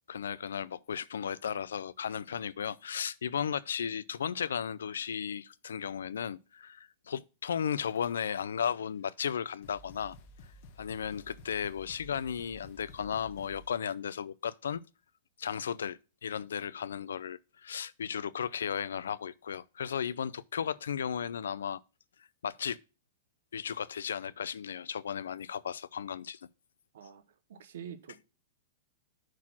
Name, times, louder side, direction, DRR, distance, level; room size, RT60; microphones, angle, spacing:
voice 1, 0.1-10.2 10.8-14.8 15.4-21.8 22.4-22.8 23.5-26.4, left 8 dB, 90° left, 0.4 m, -35 dB
sound 1, 7.8-8.5 9.2-9.3 9.6-13.8, left 1 dB, 55° left, 1.3 m, -53 dB
voice 2, 27.5-28.3, right 8 dB, 75° right, 1.0 m, -46 dB
6.2 x 4.4 x 5.7 m
hypercardioid pair, 135°, 0 cm